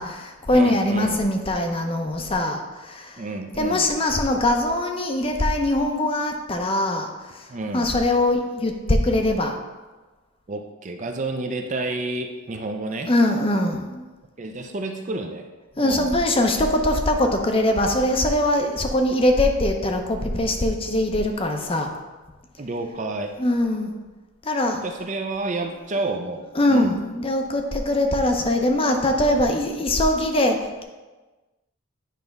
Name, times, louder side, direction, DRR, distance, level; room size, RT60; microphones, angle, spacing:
voice 1, 0.0-3.2 3.6-9.6 13.1-14.0 15.8-21.9 23.4-23.9 24.4-24.8 26.5-30.8, left 1 dB, 25° left, 4 dB, 0.6 m, -22 dB
voice 2, 0.5-1.2 3.2-3.9 7.5-7.9 10.5-13.1 14.4-15.5 15.8-16.1 22.6-23.4 24.8-26.9, right 2 dB, 35° right, 5 dB, 0.5 m, -30 dB
9.1 x 3.4 x 5.2 m, 1.2 s
head